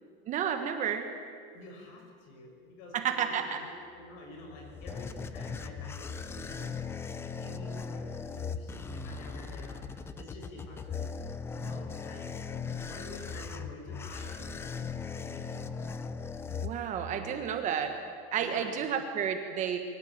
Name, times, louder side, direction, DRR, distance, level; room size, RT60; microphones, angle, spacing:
voice 1, 0.3-1.1 2.9-3.6 16.6-17.9 18.3-19.8, right 8 dB, 25° right, 6 dB, 1.4 m, -31 dB
voice 2, 1.5-6.9 7.4-9.9 10.2-11.1 11.5-12.3 12.7-15.9 17.1-17.8 18.3-19.0, left 2 dB, 45° left, 3 dB, 6.3 m, -49 dB
sound 1, 4.3-17.3, left 5 dB, 10° left, 0.6 m, -39 dB
25.5 x 23.0 x 8.9 m, 2.2 s
supercardioid pair, 175°, 31 cm